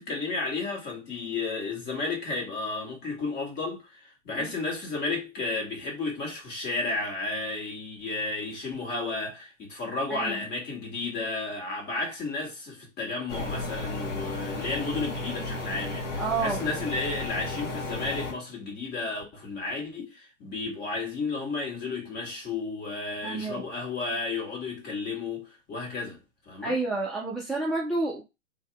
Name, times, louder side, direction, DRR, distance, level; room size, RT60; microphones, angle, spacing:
voice 1, 0.0-26.2 26.5-26.7, left 3 dB, 25° left, 2.0 m, -33 dB
voice 2, 10.1-10.5 16.2-16.6 23.2-23.6 26.6-28.2, right 3 dB, ahead, 0.4 m, -29 dB
sound 1, 13.3-18.3, left 2 dB, 70° left, 1.4 m, -33 dB
4.0 x 2.8 x 3.5 m
hypercardioid pair, 115°, 37 cm